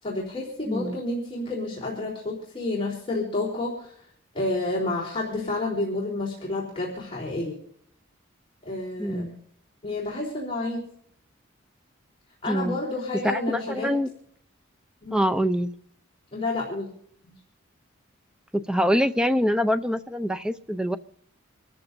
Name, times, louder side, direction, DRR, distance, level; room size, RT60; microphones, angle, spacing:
voice 1, 0.0-4.0 4.3-7.6 8.6-9.3 9.8-10.8 12.4-13.9 15.0-15.2 16.3-16.9 17.2-17.3, left 2 dB, 25° left, -4 dB, 3.8 m, -30 dB
voice 2, 0.7-1.0 9.0-9.4 12.5-12.8 13.2-14.1 15.1-15.7 18.5-21.0, equal, 5° right, 10 dB, 0.6 m, -25 dB
26.5 x 14.0 x 2.7 m, 0.67 s
head